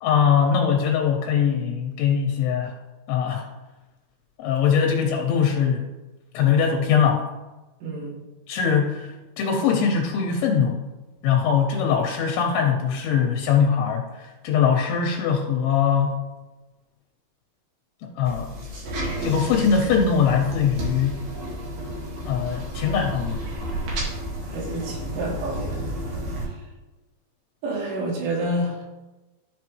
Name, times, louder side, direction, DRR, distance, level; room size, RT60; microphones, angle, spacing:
voice 1, 0.0-2.7 3.1-3.5 4.4-5.8 6.3-7.2 8.5-10.8 11.2-16.2 18.0-18.5 19.2-21.2 22.2-23.4, left 7 dB, 80° left, 1 dB, 3.0 m, -22 dB
voice 2, 7.8-8.2 24.5-25.8 26.4-26.6 27.6-28.8, right 1 dB, 70° right, -2 dB, 4.1 m, -29 dB
sound 1, 18.3-26.4, equal, 55° right, 2.7 m, -32 dB
13.0 x 5.6 x 3.1 m, 1.1 s
omnidirectional pair, 5.7 m